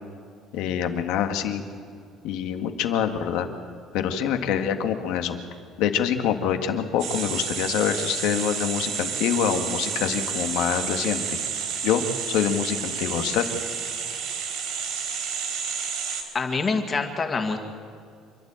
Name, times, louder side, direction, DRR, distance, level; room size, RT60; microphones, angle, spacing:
voice 1, 0.5-1.6 2.2-3.5 3.9-5.4 5.8-11.4 11.8-12.0 12.3-13.5, left 9 dB, 85° left, 6 dB, 1.8 m, -25 dB
sound 1, 7.0-16.2, right 7 dB, 65° right, 4.0 m, -30 dB
voice 2, 16.3-17.6, left 4 dB, 25° left, 4 dB, 2.1 m, -25 dB
28.0 x 12.0 x 9.0 m, 2.3 s
cardioid pair, 155°, 0 cm